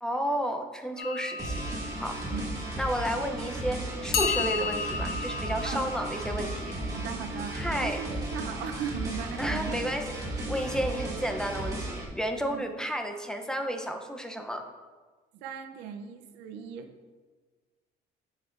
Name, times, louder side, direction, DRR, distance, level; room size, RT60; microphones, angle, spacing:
voice 1, 0.0-1.7 2.0-2.2 2.8-6.7 7.5-8.0 9.4-10.1 10.5-14.6, equal, 5° left, 5 dB, 0.6 m, -32 dB
sound 1, 1.0-3.4 4.1-8.0, left 5 dB, 70° left, 0.9 m, -35 dB
sound 2, 1.4-12.0, right 1 dB, 20° right, 2.0 m, -35 dB
voice 2, 2.3-2.6 5.6-5.8 6.9-9.8 12.5-12.6 15.4-16.9, right 7 dB, 90° right, 6 dB, 0.7 m, -38 dB
8.0 x 7.2 x 2.5 m, 1.4 s
cardioid pair, 110°, 17 cm